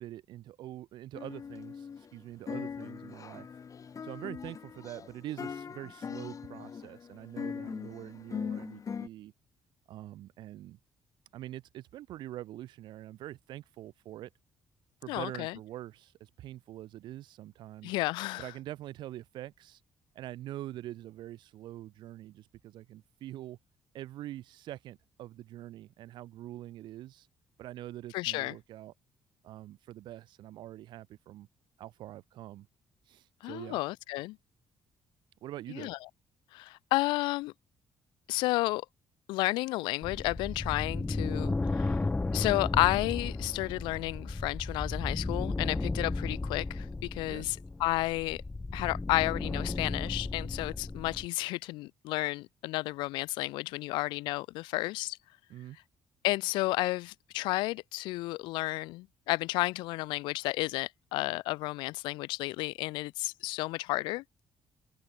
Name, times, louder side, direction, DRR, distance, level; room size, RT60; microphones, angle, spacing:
voice 1, 0.0-3.5 4.0-9.3 9.9-10.8 11.3-14.3 15.0-18.0 18.4-19.8 20.1-23.6 23.9-27.3 27.6-28.9 29.4-31.5 31.8-32.7 33.1-33.8 35.4-35.9 47.3-47.5 55.5-55.8, right 14 dB, 80° right, 2.3 m, -44 dB
sound 1, 1.1-2.2 2.5-9.1, left 6 dB, 45° left, 1.8 m, -41 dB
voice 2, 15.1-15.6 17.8-18.5 28.1-28.6 33.4-34.4 35.7-36.0 36.5-37.5 38.3-38.8 39.3-42.0 42.3-48.4 48.7-55.2 56.2-64.2, left 20 dB, 90° left, 0.9 m, -32 dB
sound 2, 40.0-51.3, left 3 dB, 20° left, 1.0 m, -34 dB
supercardioid pair, 70°, 8 cm